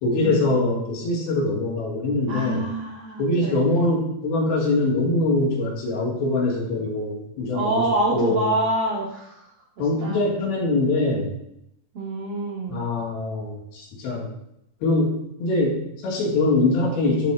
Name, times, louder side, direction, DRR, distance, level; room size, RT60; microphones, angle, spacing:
voice 1, 0.0-2.7 3.2-7.7 8.1-8.6 9.8-11.4 12.7-14.3 14.8-15.1 15.4-17.3, left 2 dB, 85° left, -3 dB, 3.7 m, -23 dB
voice 2, 2.3-3.9 7.5-9.5 9.8-10.2 11.9-12.8, right 2 dB, 75° right, -3 dB, 1.4 m, -26 dB
13.5 x 4.5 x 2.4 m, 0.80 s
omnidirectional pair, 4.3 m